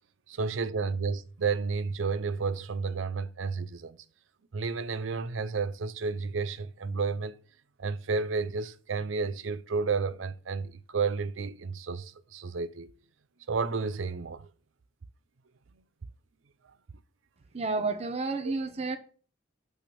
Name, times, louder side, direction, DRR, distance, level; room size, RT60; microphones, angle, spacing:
voice 1, 0.3-4.0 4.5-7.4 7.8-12.9 13.5-14.5 18.4-18.5, right 4 dB, 90° right, 0.6 m, -31 dB
voice 2, 17.5-19.0, right 3 dB, 35° right, 0.9 m, -30 dB
8.6 x 3.5 x 5.9 m
head